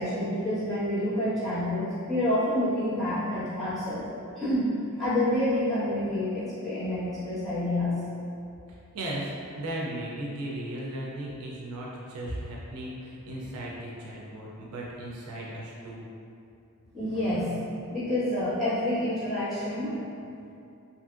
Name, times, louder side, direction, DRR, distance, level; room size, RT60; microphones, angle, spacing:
voice 1, 0.0-4.1 4.4-8.0 16.9-17.6 17.9-20.0, left 1 dB, ahead, -17 dB, 1.2 m, -28 dB
voice 2, 8.7-16.1, right 1 dB, 75° right, -4 dB, 0.4 m, -36 dB
2.8 x 2.5 x 2.4 m, 2.6 s
head